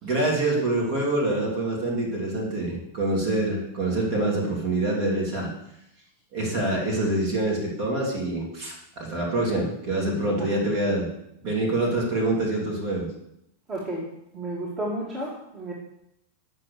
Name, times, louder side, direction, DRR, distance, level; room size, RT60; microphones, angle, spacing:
voice 1, 0.0-5.5 6.3-11.1 11.4-13.1, right 2 dB, 45° right, -1 dB, 3.5 m, -26 dB
voice 2, 13.7-14.0 14.3-15.7, right 1 dB, 30° right, -5 dB, 2.7 m, -32 dB
8.3 x 6.2 x 7.0 m, 0.81 s
figure-of-eight pair, 90°, 0 cm